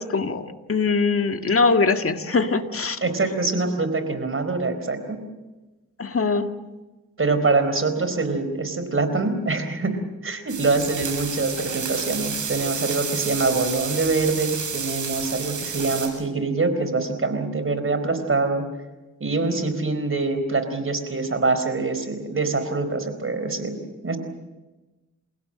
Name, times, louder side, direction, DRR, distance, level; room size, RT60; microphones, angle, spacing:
voice 1, 0.0-3.0 6.0-6.5, left 4 dB, 45° left, 6 dB, 1.9 m, -22 dB
voice 2, 3.0-5.2 7.2-18.6 19.2-23.8 24.0-24.2, right 3 dB, 45° right, 10 dB, 4.3 m, -24 dB
sound 1, 10.5-16.1, right 6 dB, 75° right, 7.2 m, -30 dB
29.0 x 16.5 x 7.7 m, 1.1 s
cardioid pair, 55°, 31 cm